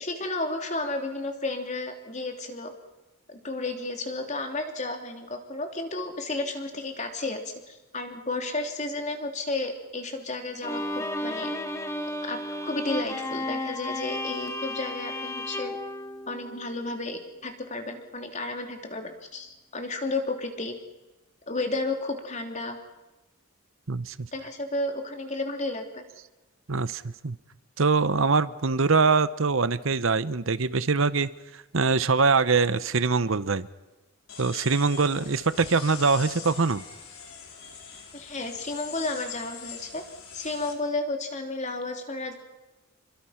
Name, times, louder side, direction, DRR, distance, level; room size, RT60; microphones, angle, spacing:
voice 1, 0.0-2.7 3.3-11.5 12.2-12.4 12.6-15.8 16.3-20.8 21.5-22.8 24.3-26.0 38.1-40.0 40.3-42.3, left 2 dB, 35° left, 4 dB, 3.2 m, -32 dB
Bowed string instrument, 10.6-16.9, left 1 dB, 15° left, 1.7 m, -33 dB
voice 2, 23.9-24.3 26.7-27.4 27.8-33.7 34.4-36.8, right 4 dB, 65° right, 15 dB, 0.9 m, -23 dB
sound 1, 34.3-40.7, left 6 dB, 80° left, 4.6 m, -43 dB
28.0 x 23.5 x 5.9 m, 1.1 s
head